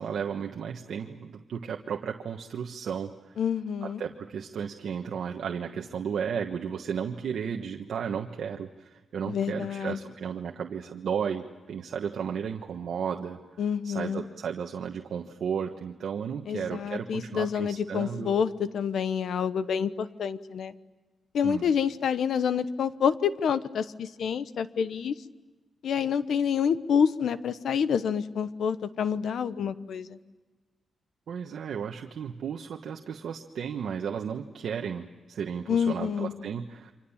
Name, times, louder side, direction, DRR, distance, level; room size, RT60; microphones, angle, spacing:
voice 1, 0.0-3.4 3.8-13.4 13.8-18.4 21.4-21.6 31.3-36.9, right 7 dB, 70° right, 3 dB, 1.3 m, -34 dB
voice 2, 3.4-4.0 9.3-10.0 13.6-14.2 16.5-20.7 21.3-25.1 25.8-30.2 35.7-36.3, left 7 dB, 70° left, 13 dB, 1.0 m, -28 dB
29.5 x 25.5 x 7.3 m, 1.3 s
wide cardioid pair, 165°, 0 cm